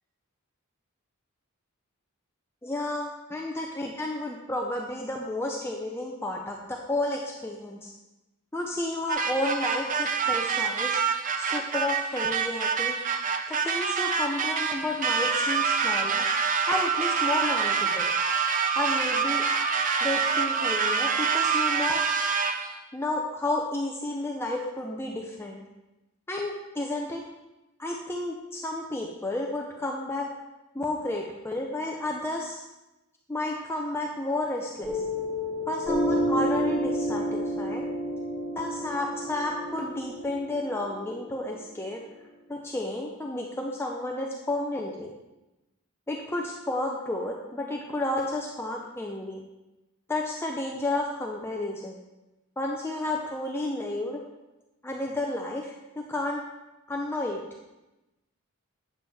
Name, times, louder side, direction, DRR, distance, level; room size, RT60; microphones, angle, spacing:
voice 1, 2.6-7.9 8.5-11.0 11.4-13.0 13.5-16.3 16.7-18.1 18.8-19.4 20.0-22.0 22.9-25.6 26.3-27.2 27.8-30.3 30.7-32.6 33.3-35.0 35.7-37.8 38.6-42.0 42.5-45.1 46.1-49.4 50.1-52.0 52.6-54.2 54.8-56.4 56.9-57.4, left 1 dB, 10° left, 0 dB, 0.5 m, -31 dB
sound 1, 9.1-22.8, right 5 dB, 35° right, 0.6 m, -26 dB
Piano, 34.8-41.9, equal, 5° right, 1.2 m, -30 dB
8.6 x 7.2 x 3.4 m, 1.0 s
head